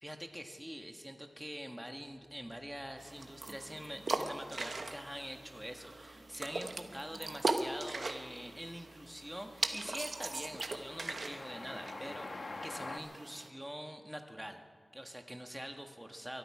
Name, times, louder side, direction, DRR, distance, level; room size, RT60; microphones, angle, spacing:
voice 1, 0.0-14.6 14.9-16.4, equal, 5° right, 5 dB, 1.4 m, -45 dB
sound 1, 1.9-11.5, right 1 dB, 45° left, 5.3 m, -61 dB
sound 2, 3.0-13.5, right 3 dB, 75° right, 1.0 m, -40 dB
Train, 7.4-7.8 8.1-13.0, left 3 dB, 70° left, 1.1 m, -47 dB
23.5 x 13.0 x 4.8 m, 2.1 s
wide cardioid pair, 80°, 0 cm